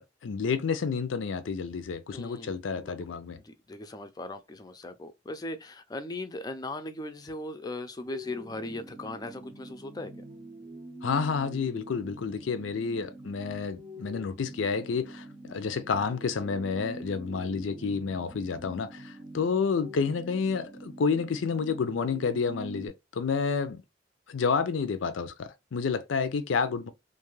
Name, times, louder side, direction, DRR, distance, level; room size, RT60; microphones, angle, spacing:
voice 1, 0.0-3.4 11.0-23.8 24.3-26.9, left 5 dB, 85° left, 0.4 m, -30 dB
voice 2, 2.1-3.0 3.4-10.1, left 2 dB, 20° left, 0.4 m, -39 dB
sound 1, 8.0-22.9, right 1 dB, 30° right, 0.6 m, -45 dB
2.5 x 2.4 x 3.0 m
head